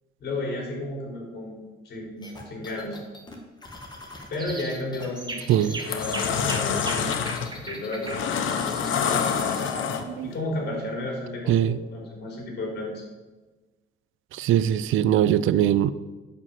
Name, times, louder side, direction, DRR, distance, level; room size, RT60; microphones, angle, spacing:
voice 1, 0.2-1.6 1.8-3.0 4.3-5.4 5.6-7.2 7.5-9.3 10.2-13.0, left 2 dB, 55° left, -1 dB, 3.8 m, -33 dB
sound 1, 2.2-6.4 6.7-8.1, left 2 dB, 20° left, 1.6 m, -44 dB
sound 2, 4.4-4.8 5.2-9.9, right 3 dB, 20° right, 1.0 m, -38 dB
sound 3, 4.9-5.2 5.7-10.3, left 7 dB, 80° left, 1.0 m, -27 dB
voice 2, 9.7-10.3 11.5-11.8 14.3-15.9, right 11 dB, 80° right, 15 dB, 0.5 m, -22 dB
9.8 x 5.2 x 7.4 m, 1.2 s
cardioid pair, 140°, 20 cm